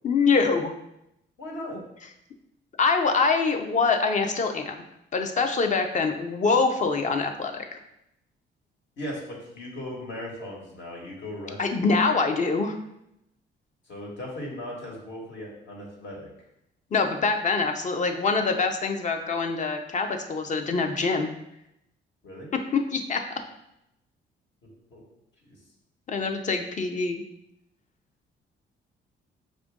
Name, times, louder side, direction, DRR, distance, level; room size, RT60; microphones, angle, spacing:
voice 1, 0.0-0.7 2.8-4.8 5.1-7.7 11.6-12.8 16.9-21.3 22.7-23.2 26.1-27.2, left 4 dB, 40° left, 5 dB, 0.6 m, -24 dB
voice 2, 1.4-1.8 9.0-11.8 13.9-16.3 22.2-22.5 24.9-25.0 25.4-25.6, left 1 dB, 65° left, -2 dB, 1.5 m, -37 dB
5.2 x 2.5 x 3.5 m, 0.83 s
cardioid pair, 90°, 20 cm